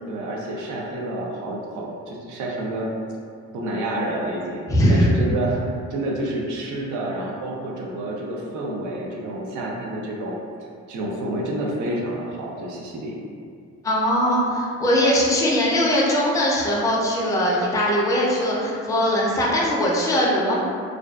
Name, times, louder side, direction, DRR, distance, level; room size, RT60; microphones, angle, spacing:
voice 1, 0.1-2.9 3.5-5.6 5.9-10.4 10.9-13.2, right 1 dB, 80° right, -2 dB, 0.5 m, -29 dB
voice 2, 4.7-5.1 13.8-20.6, equal, 10° left, -5 dB, 0.4 m, -20 dB
2.4 x 2.2 x 2.3 m, 2.3 s
cardioid pair, 90°, 30 cm